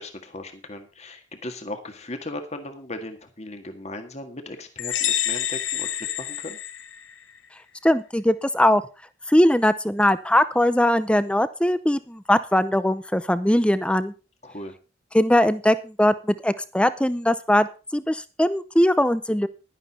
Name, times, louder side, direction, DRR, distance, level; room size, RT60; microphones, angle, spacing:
voice 1, 0.0-6.6 14.4-14.8, left 2 dB, 35° left, 6 dB, 1.7 m, -37 dB
sound 1, 4.8-7.4, left 11 dB, 70° left, 1.2 m, -28 dB
voice 2, 7.8-8.8 9.3-14.1 15.1-17.7 17.9-19.5, left 1 dB, 5° left, 14 dB, 0.6 m, -20 dB
11.5 x 11.0 x 4.3 m, 0.32 s
head